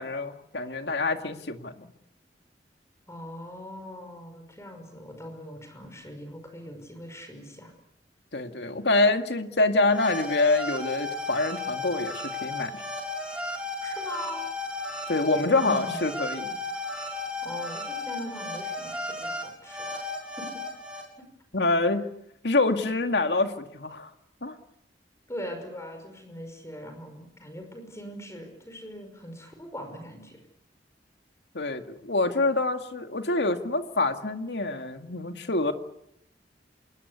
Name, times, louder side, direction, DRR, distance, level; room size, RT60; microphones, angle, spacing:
voice 1, 0.0-1.9 8.3-12.8 15.1-16.6 21.5-22.1 22.4-24.1 24.4-24.6 31.5-35.7, left 2 dB, 75° left, 6 dB, 2.1 m, -26 dB
voice 2, 3.1-7.7 13.8-14.4 15.6-16.0 17.4-20.6 21.2-21.3 25.3-30.4, equal, 15° left, 5 dB, 5.6 m, -41 dB
sound 1, 9.9-21.0, left 2 dB, 5° right, 6.5 m, -34 dB
27.5 x 21.0 x 8.3 m, 0.78 s
head